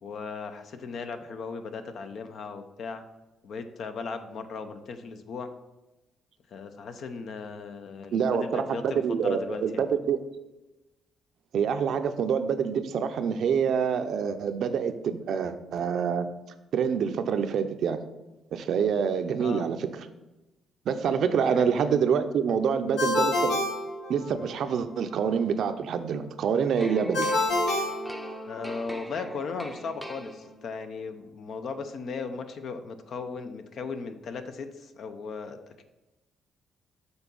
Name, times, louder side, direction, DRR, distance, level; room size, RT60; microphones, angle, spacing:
voice 1, 0.0-3.0 3.4-5.5 6.5-9.9 19.4-19.7 21.2-21.9 28.5-35.8, left 4 dB, 65° left, 8 dB, 0.7 m, -37 dB
voice 2, 8.1-10.2 11.5-16.3 16.7-18.0 18.5-19.9 20.9-23.6 24.1-27.3, right 7 dB, 70° right, 9 dB, 0.5 m, -26 dB
Ringtone, 23.0-24.6 27.1-28.8, left 2 dB, 80° left, 1.3 m, -28 dB
sound 1, 26.8-30.9, right 1 dB, ahead, 0.6 m, -41 dB
7.0 x 4.0 x 5.3 m, 1.0 s
cardioid pair, 90°, 0 cm